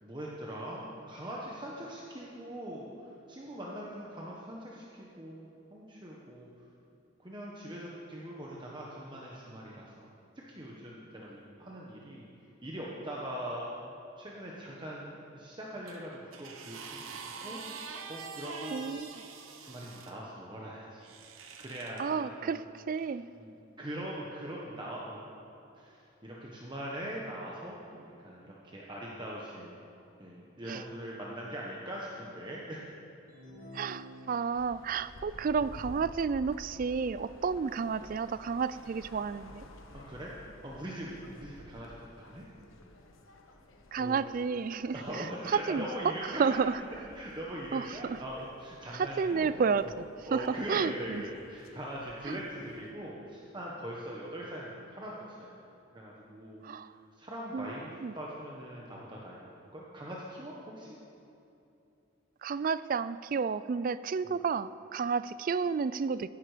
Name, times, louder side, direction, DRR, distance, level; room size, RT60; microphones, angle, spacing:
voice 1, 0.0-6.5 7.2-10.1 10.5-12.2 12.6-13.7 14.2-17.6 18.1-18.8 19.6-21.1 21.6-22.6 23.3-25.2 25.7-29.7 30.2-32.8 39.9-40.3 40.6-42.4 44.0-44.2 44.9-46.7 47.0-49.9 50.2-55.5 55.9-56.6 57.2-57.9 58.1-61.0, right 1 dB, 25° right, -4 dB, 1.3 m, -41 dB
sound 1, 15.9-20.1 21.0-22.0 22.9-23.1, right 5 dB, 85° right, 1.0 m, -45 dB
voice 2, 18.7-19.2 22.0-22.6 22.9-23.3 30.7-30.8 33.7-39.6 43.9-46.1 46.4-46.8 47.7-48.2 48.9-51.2 52.3-52.4 56.6-56.9 57.5-57.8 58.0-58.1 62.4-66.3, right 5 dB, 45° right, 15 dB, 0.3 m, -31 dB
sound 2, 33.3-34.9, left 1 dB, 40° left, 3.7 m, -49 dB
sound 3, 34.5-52.9, left 1 dB, 80° left, 1.2 m, -53 dB
15.5 x 11.0 x 5.1 m, 2.8 s
head